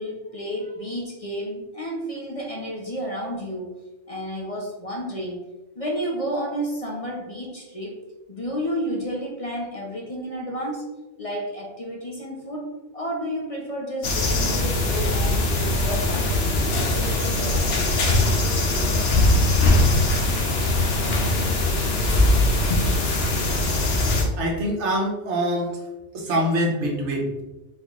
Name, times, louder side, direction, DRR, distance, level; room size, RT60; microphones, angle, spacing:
voice 1, 0.0-3.7 4.1-5.4 5.8-8.0 8.3-10.9 11.2-12.7 12.9-16.7, equal, 35° left, -2 dB, 0.7 m, -31 dB
sound 1, 14.0-24.2, left 2 dB, 60° left, 1.0 m, -21 dB
voice 2, 24.4-25.8 26.1-27.4, equal, 75° right, 0 dB, 1.3 m, -24 dB
4.1 x 3.9 x 3.0 m, 1.1 s
omnidirectional pair, 1.2 m